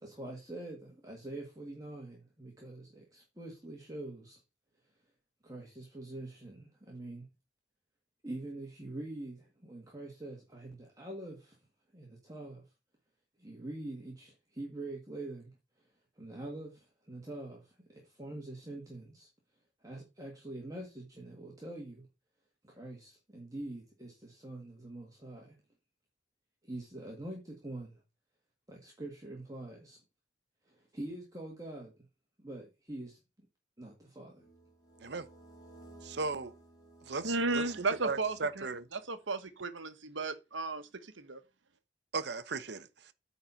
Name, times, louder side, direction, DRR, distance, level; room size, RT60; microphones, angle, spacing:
voice 1, 0.0-4.4 5.4-7.3 8.2-11.6 11.9-12.6 13.4-15.9 16.1-19.3 19.8-22.1 22.6-25.6 26.6-28.0 28.7-30.0 30.6-31.9 32.4-33.2 33.8-34.4, right 2 dB, 20° right, 1.8 m, -45 dB
sound 1, 34.4-39.0, right 2 dB, 20° left, 2.4 m, -56 dB
voice 2, 36.0-36.6 37.1-37.7 38.0-38.9 42.1-43.1, right 4 dB, 60° right, 0.8 m, -37 dB
voice 3, 37.2-38.7 38.9-41.4, right 3 dB, 85° right, 1.2 m, -34 dB
9.2 x 4.3 x 5.6 m
head